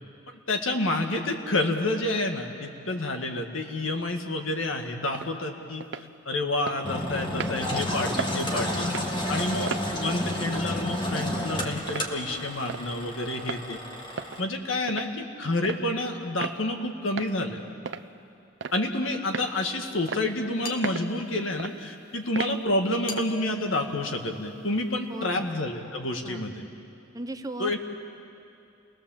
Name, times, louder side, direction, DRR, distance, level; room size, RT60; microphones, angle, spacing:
voice 1, 0.5-13.8 14.4-15.1 15.4-17.6 18.7-26.6 27.6-27.8, left 2 dB, 85° left, 3 dB, 2.1 m, -29 dB
sound 1, 5.1-5.3 5.8-6.1 6.7-6.8 7.4-7.6 8.2-8.4 8.8-9.1 9.7-9.9 10.4-10.6 11.2-11.3 11.9-12.1 12.7-12.9 13.4-13.6 14.2-14.4 14.9-15.1 15.6-15.8 16.4-16.6 17.2-17.3 17.9-18.1 18.6-18.9 19.3-19.5 20.1-20.3 20.8-21.1 21.6-21.7 22.4-22.6 23.1-23.3, right 5 dB, 65° right, 0.5 m, -34 dB
Engine, 6.8-14.4, left 1 dB, 25° left, 1.7 m, -31 dB
sound 2, 20.6-21.7 23.1-24.9, left 5 dB, 45° left, 1.8 m, -42 dB
voice 2, 25.1-25.5 26.2-26.5 27.1-27.8, right 1 dB, 20° right, 8 dB, 0.8 m, -37 dB
29.5 x 20.0 x 7.4 m, 2.7 s
head